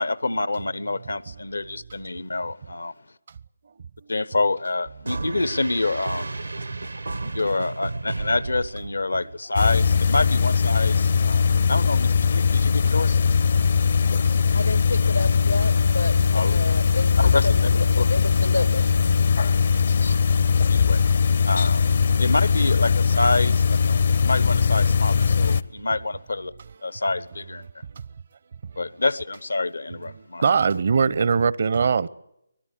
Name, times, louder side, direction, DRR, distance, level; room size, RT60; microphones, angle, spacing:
voice 1, 0.0-2.9 4.1-6.3 7.2-13.2 16.3-16.6 17.2-17.5 18.0-18.1 20.0-20.2 20.6-21.0 21.4-21.9 22.2-26.5 26.8-27.7 28.8-30.4, left 2 dB, 75° left, 1.1 m, -27 dB
sound 1, 5.1-9.3, right 3 dB, 75° right, 1.1 m, -32 dB
sound 2, 9.6-25.6, left 6 dB, 50° left, 0.9 m, -20 dB
voice 2, 14.5-18.9, left 2 dB, 90° left, 2.2 m, -30 dB
voice 3, 30.2-32.1, right 5 dB, 50° right, 0.8 m, -22 dB
24.5 x 19.0 x 8.4 m
figure-of-eight pair, 145°, 0 cm